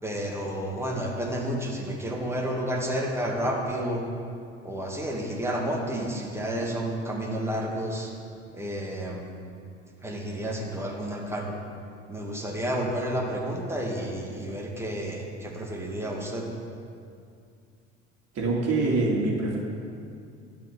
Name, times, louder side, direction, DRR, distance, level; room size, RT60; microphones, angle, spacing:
voice 1, 0.0-4.0 4.6-8.1 8.5-9.3 10.0-11.5 12.1-16.5, right 1 dB, 5° right, -1 dB, 2.2 m, -30 dB
voice 2, 18.3-19.6, right 3 dB, 45° right, -3 dB, 2.9 m, -24 dB
12.0 x 5.0 x 8.2 m, 2.4 s
figure-of-eight pair, 60°, 35 cm